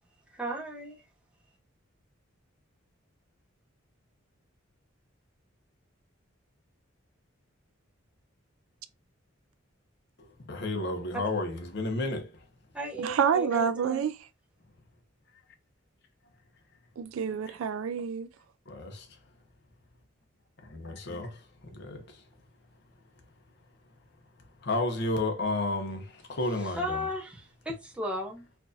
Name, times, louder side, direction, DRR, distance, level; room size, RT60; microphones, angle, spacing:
voice 1, 0.3-1.1 12.7-14.1 26.3-28.5, equal, 5° right, 0.6 m, -36 dB
voice 2, 10.2-12.4 17.5-17.6 18.7-19.1 20.6-22.2 24.6-27.1, left 2 dB, 55° left, 0.8 m, -32 dB
voice 3, 13.0-14.1 17.0-18.3, right 7 dB, 75° right, 0.3 m, -28 dB
4.5 x 2.4 x 2.6 m
head